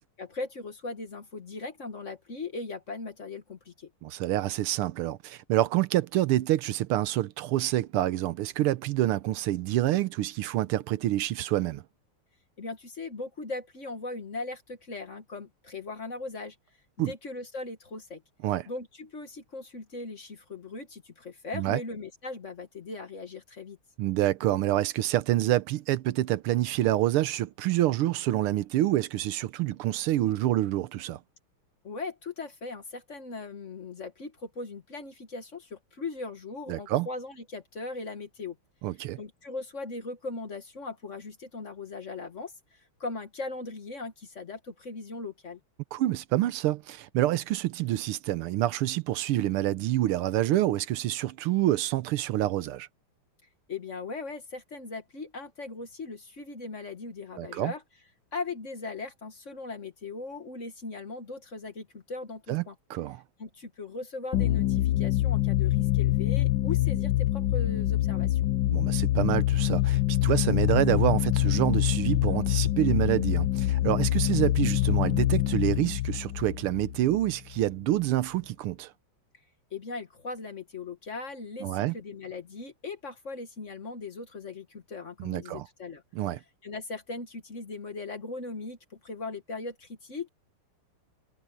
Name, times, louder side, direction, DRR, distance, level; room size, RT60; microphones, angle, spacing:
voice 1, 0.2-3.9 12.6-16.5 17.0-18.2 18.7-23.8 31.8-38.6 39.2-45.6 53.7-57.8 58.3-62.7 63.4-68.4 79.7-86.0 86.3-90.3, left 3 dB, 40° left, 1.6 m, -39 dB
voice 2, 4.0-11.8 17.0-17.1 18.4-18.7 21.5-21.8 24.0-31.2 36.7-37.1 38.8-39.2 45.9-52.9 57.4-57.7 62.5-62.6 62.9-63.2 68.7-78.9 81.6-81.9 85.2-85.6 86.1-86.4, right 14 dB, 80° right, 1.6 m, -27 dB
sound 1, 64.3-77.6, left 15 dB, 75° left, 1.2 m, -25 dB
omnidirectional pair, 2.4 m